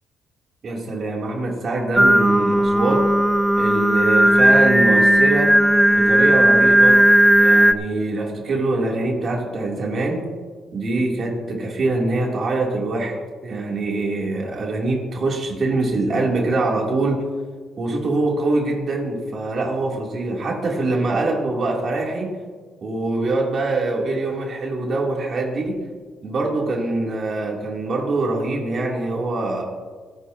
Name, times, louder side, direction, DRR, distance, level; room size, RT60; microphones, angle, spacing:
voice 1, 0.6-3.0 3.6-5.5 5.9-7.0 7.4-10.2 10.7-17.2 17.8-22.3 22.8-25.8 26.2-29.6, right 2 dB, 50° right, -1 dB, 2.9 m, -24 dB
Singing, 2.0-7.7, right 1 dB, 5° right, 0.6 m, -15 dB
27.5 x 9.4 x 2.8 m, 1.5 s
cardioid pair, 90°, 0 cm